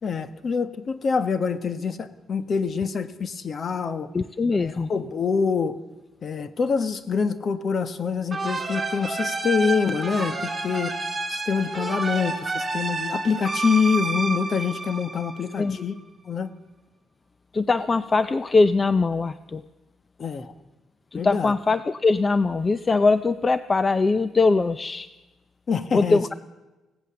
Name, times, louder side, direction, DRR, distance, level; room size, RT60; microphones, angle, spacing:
voice 1, 0.0-4.1 4.6-5.8 6.2-11.0 11.3-15.9 16.2-16.5 20.2-20.5 21.1-21.5 25.7-26.2, left 5 dB, 45° left, 11 dB, 1.3 m, -25 dB
voice 2, 4.1-4.9 15.6-15.8 17.5-19.6 21.1-25.1 25.9-26.3, left 3 dB, 30° left, 13 dB, 0.6 m, -21 dB
sound 1, 8.3-15.7, right 3 dB, 15° right, 4.2 m, -29 dB
25.0 x 16.5 x 7.0 m, 1.1 s
cardioid pair, 90°, 0 cm